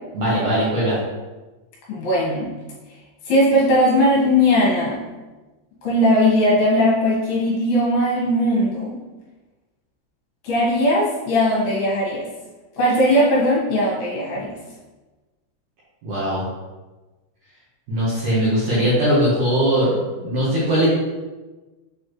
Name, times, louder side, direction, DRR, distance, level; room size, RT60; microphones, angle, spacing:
voice 1, 0.1-1.0 16.0-16.4 17.9-19.9 20.2-20.9, equal, 65° right, -9 dB, 2.1 m, -20 dB
voice 2, 1.9-2.5 3.3-5.0 5.8-9.0 10.4-12.3 12.8-14.6, left 1 dB, 65° left, -6 dB, 3.1 m, -18 dB
7.5 x 4.3 x 3.1 m, 1.2 s
omnidirectional pair, 5.1 m